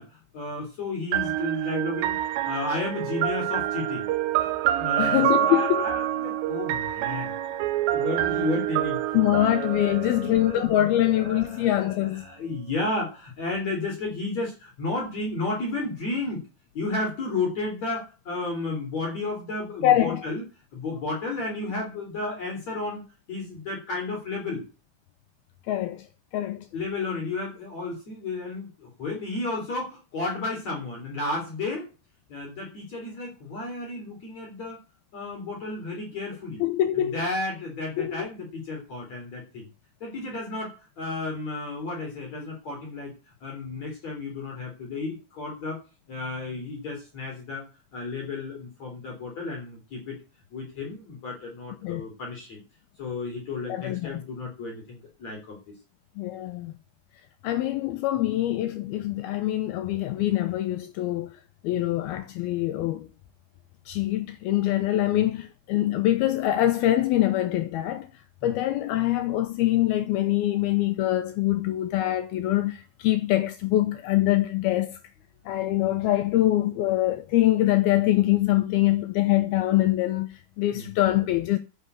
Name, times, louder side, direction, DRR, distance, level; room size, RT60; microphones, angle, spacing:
voice 1, 0.0-2.2 2.4-4.1 4.8-7.3 7.9-9.0 9.3-9.8 10.0-10.9 11.1-16.4 16.7-20.4 20.7-23.0 23.3-24.6 26.7-31.9 32.3-34.8 35.1-36.6 37.0-39.7 40.0-43.1 43.4-45.8 46.1-47.6 47.9-50.2 50.5-52.6 53.0-55.6 58.1-58.2 65.1-65.2 68.4-68.6 75.9-76.0 80.7-80.9, left 3 dB, 40° left, 4.5 m, -32 dB
sound 1, 1.1-10.9, right 13 dB, 80° right, 3.0 m, -27 dB
voice 2, 5.0-5.8 9.1-12.3 19.8-20.2 25.7-26.1 26.3-26.7 36.6-37.2 38.0-38.3 51.8-52.1 53.7-54.2 56.2-56.7 57.4-63.1 63.9-68.1 68.4-75.0 75.5-81.6, left 14 dB, 80° left, 2.4 m, -24 dB
9.9 x 6.6 x 8.1 m
omnidirectional pair, 5.1 m